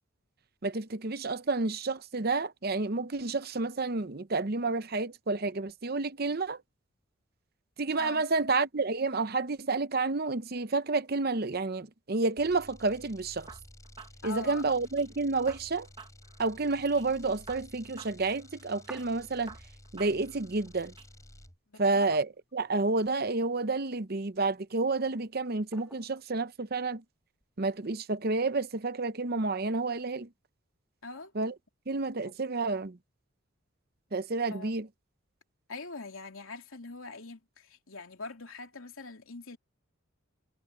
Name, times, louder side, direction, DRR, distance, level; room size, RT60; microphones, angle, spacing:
voice 1, 0.6-6.6 7.8-13.5 14.2-15.9 16.4-19.6 19.9-20.9 21.8-27.0 27.6-30.3 31.4-31.5 31.9-33.0 34.1-34.9, right 3 dB, 45° right, 0.8 m, -30 dB
sound 1, 12.4-21.6, left 1 dB, 15° left, 7.7 m, -53 dB
sound 2, 13.5-15.1 15.5-17.1 17.5-19.1 19.5-21.1, right 4 dB, 25° right, 1.4 m, -51 dB
voice 2, 14.2-14.7 21.7-22.1 31.0-31.3 32.2-32.3 34.5-34.8 35.7-39.6, left 3 dB, 75° left, 3.0 m, -43 dB
sound 3, 18.9-19.9 20.2-20.3 20.5-21.3 21.8-21.9 22.4-23.2 23.9-24.5 25.7-26.3 27.4-27.9, right 1 dB, 5° right, 2.4 m, -53 dB
head